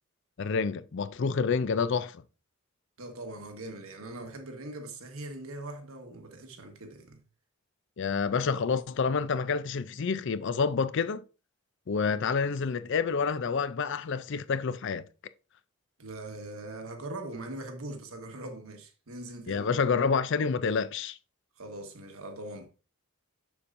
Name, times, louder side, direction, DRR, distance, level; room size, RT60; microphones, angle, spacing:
voice 1, 0.4-2.2 8.0-11.2 11.9-15.0 19.5-21.2, left 5 dB, 55° left, 0.4 m, -28 dB
voice 2, 3.0-7.2 16.0-20.0 21.6-22.7, right 2 dB, 75° right, 1.4 m, -41 dB
7.1 x 7.0 x 2.6 m
head